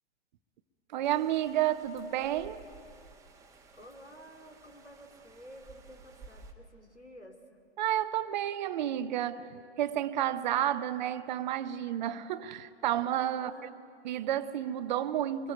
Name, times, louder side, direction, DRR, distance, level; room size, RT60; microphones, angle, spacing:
voice 1, 0.9-2.6 7.8-13.7 14.0-15.5, right 11 dB, 45° right, 1.0 m, -31 dB
sound 1, 1.0-6.5, right 4 dB, 10° right, 1.9 m, -55 dB
voice 2, 3.7-7.6 13.3-13.7, equal, 85° left, 2.8 m, -52 dB
23.5 x 21.0 x 9.3 m
figure-of-eight pair, 110°, 33 cm